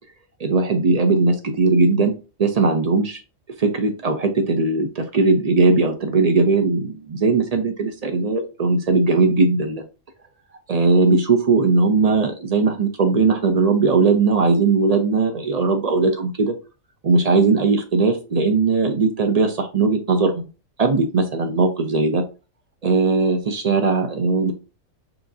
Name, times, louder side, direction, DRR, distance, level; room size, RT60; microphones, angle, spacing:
voice 1, 0.4-2.1 2.4-3.2 3.6-9.8 10.7-16.5 17.0-20.5 20.8-22.2 22.8-24.5, right 3 dB, 60° right, 6 dB, 0.4 m, -19 dB
5.8 x 2.4 x 2.6 m, 0.32 s
omnidirectional pair, 1.4 m